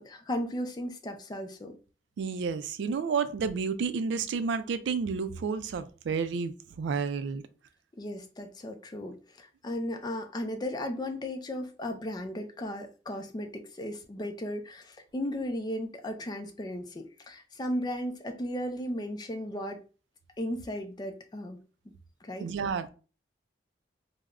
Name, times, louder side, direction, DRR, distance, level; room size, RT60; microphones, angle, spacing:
voice 1, 0.0-1.8 8.0-19.8 20.4-21.6 22.2-22.5, left 1 dB, 20° left, 0.3 m, -35 dB
voice 2, 2.2-7.4 22.4-22.9, right 5 dB, 80° right, 0.3 m, -31 dB
3.4 x 2.0 x 2.3 m
head